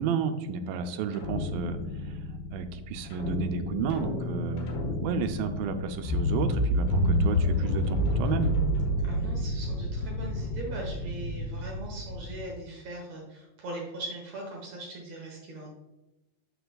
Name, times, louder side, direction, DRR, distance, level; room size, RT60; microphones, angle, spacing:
voice 1, 0.0-2.2 2.5-4.7 5.0-8.5, right 6 dB, 85° right, 8 dB, 2.3 m, -32 dB
sound 1, 1.1-12.4, left 1 dB, 80° left, 3.2 m, -29 dB
voice 2, 9.0-15.7, right 2 dB, 60° right, -2 dB, 2.0 m, -40 dB
6.7 x 6.7 x 2.3 m, 1.0 s
omnidirectional pair, 4.1 m